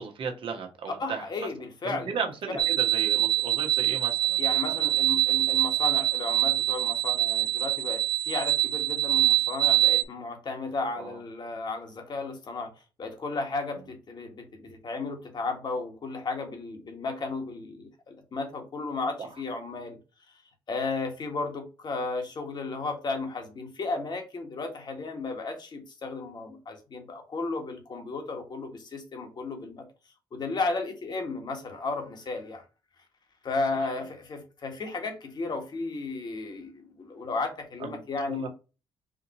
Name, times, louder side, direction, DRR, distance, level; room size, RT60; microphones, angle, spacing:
voice 1, 0.0-1.5 1.8-4.8 11.0-11.2 19.2-19.3 37.8-38.0 38.3-38.5, right 5 dB, 60° right, 1.3 m, -35 dB
voice 2, 1.0-2.1 2.5-2.6 4.4-12.7 13.0-20.0 20.7-29.8 30.3-32.6 33.4-38.5, left 3 dB, 45° left, 1.5 m, -34 dB
sound 1, 2.6-10.0, right 14 dB, 45° right, 0.8 m, -24 dB
5.0 x 2.6 x 3.0 m
supercardioid pair, 60°, 10 cm